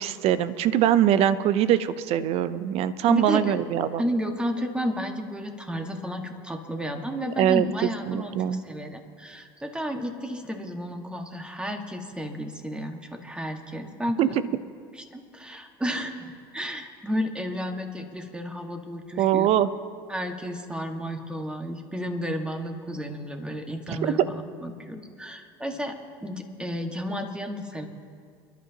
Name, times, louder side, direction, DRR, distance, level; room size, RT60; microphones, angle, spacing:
voice 1, 0.0-4.0 7.4-7.6 8.1-8.6 14.2-14.3 19.2-19.7 23.9-24.1, right 11 dB, 55° right, 14 dB, 0.7 m, -22 dB
voice 2, 3.1-3.6 4.0-14.3 15.0-19.5 20.1-26.0 26.2-27.9, equal, 10° right, 4 dB, 1.8 m, -32 dB
28.0 x 11.5 x 3.0 m, 2.2 s
hypercardioid pair, 90°, 12 cm